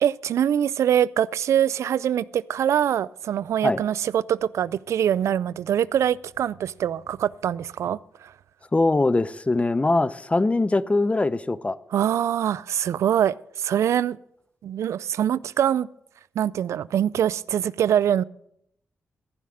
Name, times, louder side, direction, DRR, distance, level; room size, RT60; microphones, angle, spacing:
voice 1, 0.0-8.3 11.9-14.2 14.6-15.9 16.4-18.2, right 10 dB, 80° right, 0.4 m, -24 dB
voice 2, 8.7-11.8, left 2 dB, 25° left, 0.7 m, -22 dB
14.5 x 5.7 x 7.7 m
cardioid pair, 55°, 5 cm